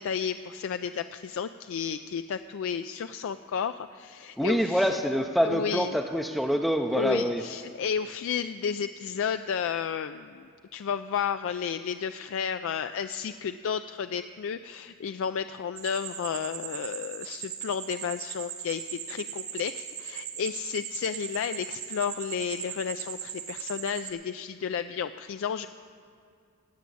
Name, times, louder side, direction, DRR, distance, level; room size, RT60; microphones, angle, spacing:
voice 1, 0.0-4.9 5.4-5.9 6.9-25.7, left 7 dB, 65° left, 10 dB, 0.3 m, -32 dB
voice 2, 4.4-7.4, equal, ahead, 3 dB, 0.4 m, -25 dB
sound 1, 15.8-24.1, right 9 dB, 65° right, 1.3 m, -39 dB
17.0 x 6.3 x 8.3 m, 2.3 s
head